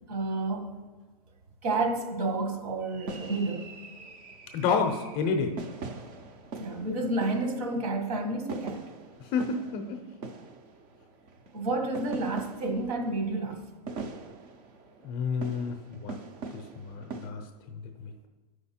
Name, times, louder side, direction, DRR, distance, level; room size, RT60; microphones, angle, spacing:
voice 1, 0.1-0.7 1.6-3.7 6.6-8.9 11.5-13.6, right 2 dB, 65° right, 1.6 m, -30 dB
sound 1, 2.8-17.3, right 3 dB, 25° right, 0.5 m, -43 dB
voice 2, 4.5-5.5 9.3-10.0 15.0-15.7 16.0-16.2 16.5-17.4 18.0-18.3, left 5 dB, 25° left, 0.6 m, -29 dB
12.0 x 4.9 x 4.3 m
supercardioid pair, 165°, 20 cm